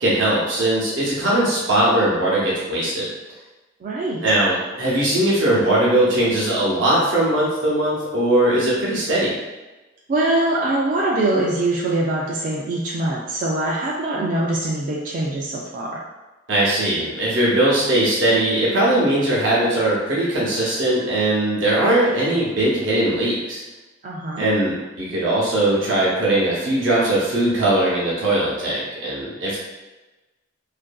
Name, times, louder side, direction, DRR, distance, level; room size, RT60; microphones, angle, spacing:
voice 1, 0.0-3.1 4.2-9.3 16.5-23.6 24.4-29.6, right 1 dB, 80° right, -6 dB, 0.7 m, -20 dB
voice 2, 3.8-4.2 10.1-16.0 24.0-24.5, right 2 dB, 45° right, -4 dB, 0.3 m, -23 dB
2.6 x 2.5 x 2.2 m, 1.1 s
head